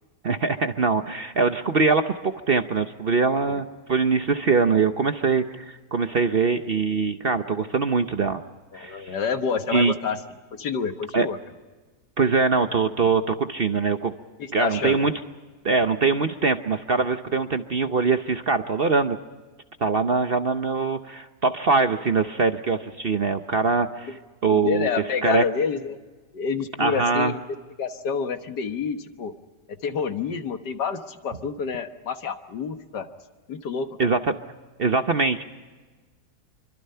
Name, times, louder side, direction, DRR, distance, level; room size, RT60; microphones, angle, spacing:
voice 1, 0.2-8.4 8.7-9.1 9.7-9.9 11.1-11.3 12.2-14.1 14.5-15.1 15.6-19.2 19.8-24.1 24.4-25.4 26.8-27.3 34.0-34.3 34.8-35.4, right 4 dB, 45° right, 8 dB, 0.8 m, -23 dB
voice 2, 8.7-10.2 10.5-11.4 14.4-15.0 24.1-24.2 24.5-26.0 26.3-27.4 27.8-29.3 29.8-33.1 33.5-33.9, left 6 dB, 80° left, 8 dB, 2.0 m, -28 dB
26.0 x 24.5 x 5.6 m, 1.3 s
omnidirectional pair, 1.8 m